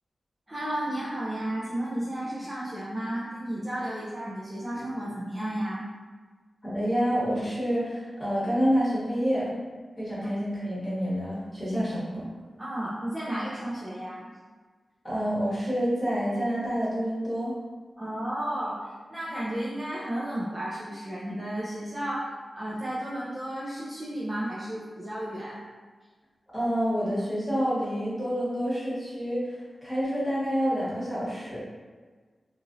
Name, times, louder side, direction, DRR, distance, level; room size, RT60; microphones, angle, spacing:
voice 1, 0.5-5.8 12.6-14.3 18.0-22.3 22.5-25.6, right 1 dB, 20° right, -8 dB, 0.4 m, -33 dB
voice 2, 6.6-9.6 10.0-12.3 15.0-17.5 26.5-31.6, equal, 10° left, -10 dB, 1.1 m, -28 dB
3.0 x 2.4 x 2.5 m, 1.4 s
wide cardioid pair, 135°, 0 cm